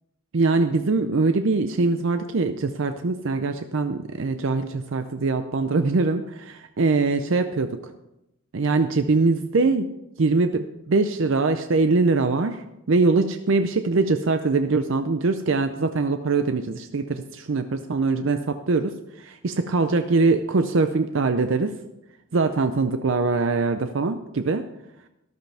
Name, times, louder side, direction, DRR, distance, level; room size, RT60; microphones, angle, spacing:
voice 1, 0.3-7.9 8.5-9.9 10.2-12.6 12.9-21.7 22.3-24.6, right 3 dB, 60° right, 8 dB, 0.5 m, -22 dB
13.5 x 11.5 x 3.4 m, 0.88 s
head